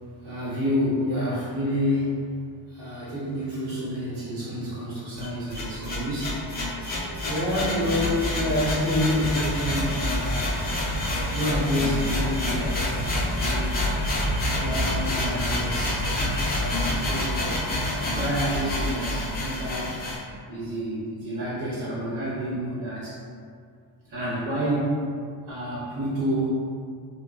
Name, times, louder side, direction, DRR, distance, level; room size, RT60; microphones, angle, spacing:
voice 1, 0.2-2.1 2.7-6.5 7.3-10.7 11.3-13.7 14.6-16.1 16.5-17.7 18.1-19.9 20.5-23.2 24.1-25.2 25.5-26.5, equal, 75° right, -11 dB, 1.0 m, -28 dB
sound 1, 5.2-20.2, left 1 dB, 25° left, 0.3 m, -27 dB
2.5 x 2.2 x 2.2 m, 2.2 s
cardioid pair, 130°, 48 cm